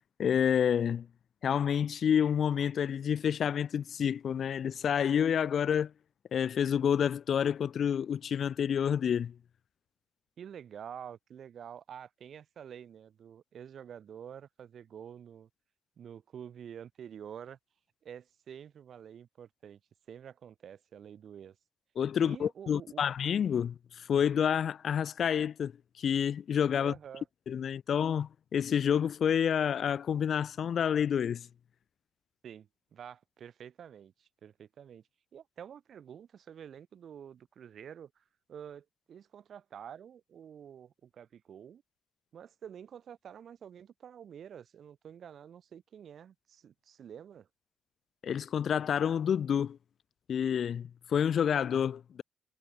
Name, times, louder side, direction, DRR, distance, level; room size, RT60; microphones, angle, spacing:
voice 1, 0.2-1.1 1.4-5.9 6.3-9.3 22.0-25.7 26.0-26.9 27.5-31.5 48.2-49.8 50.3-52.2, left 8 dB, 55° left, 1.0 m, -29 dB
voice 2, 10.4-15.5 16.0-17.6 18.0-19.8 20.1-21.6 22.2-23.0 26.8-27.3 32.4-35.0 35.3-38.2 38.5-41.8 42.3-47.5, right 8 dB, 60° right, 4.2 m, -48 dB
cardioid pair, 90°, 0 cm